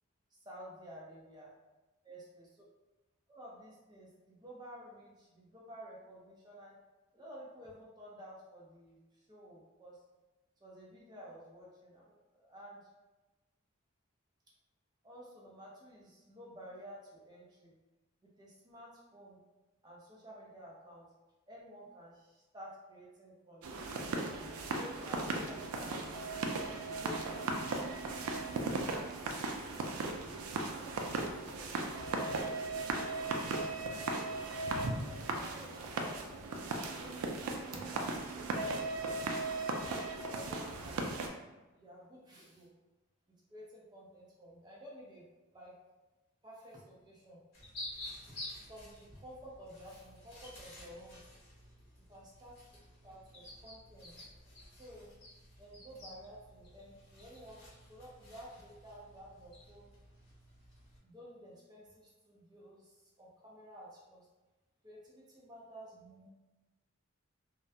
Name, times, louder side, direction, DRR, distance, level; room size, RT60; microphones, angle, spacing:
voice 1, 0.3-1.5 2.0-2.5 3.3-6.8 7.1-10.0 10.6-12.9 15.0-17.7 18.2-19.4 19.8-21.1 21.5-24.1 24.6-26.0 26.9-27.4 27.7-29.4 30.0-33.2 34.4-39.2 40.0-41.3 41.7-42.7 43.5-45.2 45.5-45.7 46.4-47.4 48.3-48.4 48.7-51.2 52.1-52.6 53.0-54.1 54.7-55.1 55.6-57.6 57.9-59.9 61.0-64.3 64.8-66.3, equal, 20° right, -5 dB, 0.5 m, -53 dB
sound 1, 23.6-41.3, right 3 dB, 85° right, 0.3 m, -37 dB
sound 2, 47.5-61.0, left 1 dB, 45° left, 0.8 m, -51 dB
2.3 x 2.1 x 2.6 m, 1.1 s
head